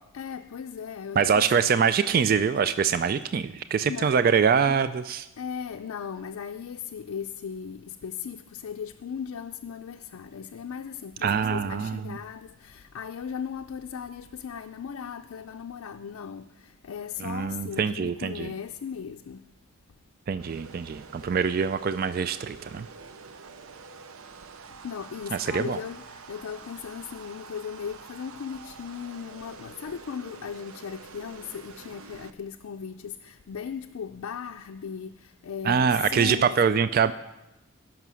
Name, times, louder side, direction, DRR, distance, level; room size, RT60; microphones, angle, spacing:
voice 1, 0.1-1.5 3.9-4.1 5.4-19.5 24.8-36.9, left 7 dB, 90° left, 0.4 m, -37 dB
voice 2, 1.2-5.3 11.2-12.2 17.2-18.5 20.3-22.9 25.4-25.8 35.6-37.1, right 6 dB, 45° right, 0.3 m, -24 dB
sound 1, 20.3-32.3, right 5 dB, 85° right, 0.6 m, -47 dB
16.5 x 6.0 x 6.2 m
head